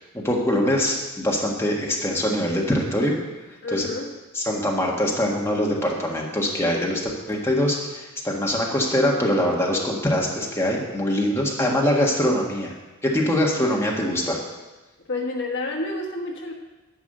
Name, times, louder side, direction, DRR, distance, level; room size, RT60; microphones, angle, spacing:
voice 1, 0.1-3.1 3.7-3.9 4.3-12.7 13.0-14.4, left 1 dB, 10° left, -2 dB, 1.5 m, -23 dB
voice 2, 3.6-4.1 15.1-16.5, left 2 dB, 55° left, 1 dB, 1.3 m, -29 dB
11.5 x 4.9 x 7.8 m, 1.1 s
head